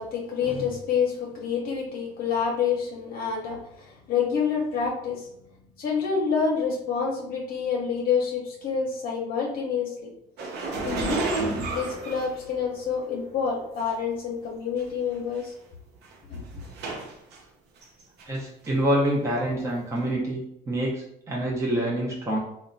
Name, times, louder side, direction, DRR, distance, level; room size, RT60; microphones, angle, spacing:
voice 1, 0.0-5.3 5.8-10.1 10.8-15.5 16.3-16.4, left 6 dB, 60° left, -1 dB, 0.6 m, -28 dB
sound 1, 10.4-13.0 13.8-13.9 14.8-14.9 15.1-15.4 16.0-17.4 17.8-18.4 18.6-18.7 20.0-20.1, right 3 dB, 80° right, 0.6 m, -32 dB
voice 2, 18.3-22.4, right 1 dB, 15° right, -4 dB, 0.6 m, -26 dB
2.9 x 2.1 x 2.5 m, 0.76 s
cardioid pair, 110°, 17 cm